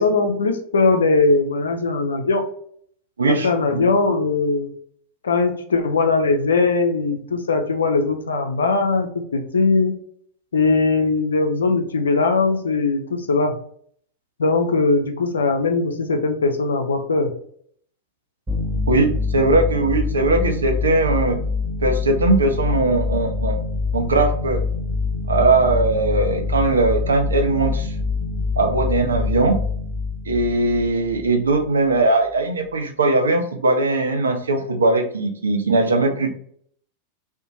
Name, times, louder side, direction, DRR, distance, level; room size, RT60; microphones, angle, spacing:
voice 1, 0.0-2.4 3.3-4.7 5.2-9.9 10.5-13.6 14.4-17.3, left 3 dB, 70° left, 5 dB, 0.4 m, -20 dB
voice 2, 3.2-3.9 18.9-21.4 21.8-23.6 23.9-24.6 25.3-27.9 28.6-29.6 30.3-36.3, right 2 dB, 70° right, 4 dB, 0.5 m, -19 dB
sound 1, 18.5-31.6, left 4 dB, 15° right, 0.8 m, -25 dB
2.5 x 2.1 x 2.9 m, 0.62 s
figure-of-eight pair, 90°, 0 cm